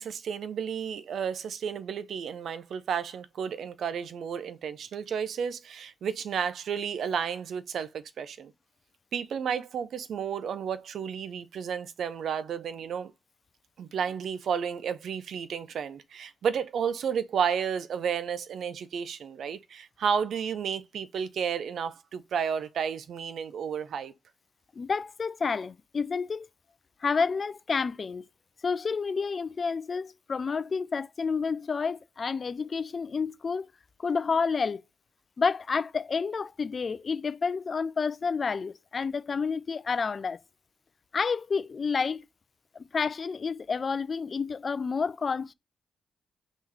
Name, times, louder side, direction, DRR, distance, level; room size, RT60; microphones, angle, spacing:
voice 1, 0.0-8.5 9.1-13.1 13.8-24.1, right 7 dB, 75° right, 0.5 m, -32 dB
voice 2, 24.8-26.5 27.0-28.2 28.6-33.7 34.0-34.8 35.4-40.4 41.1-42.2 42.7-45.5, left 5 dB, 50° left, 0.4 m, -29 dB
3.8 x 3.0 x 4.0 m
supercardioid pair, 55°, 0 cm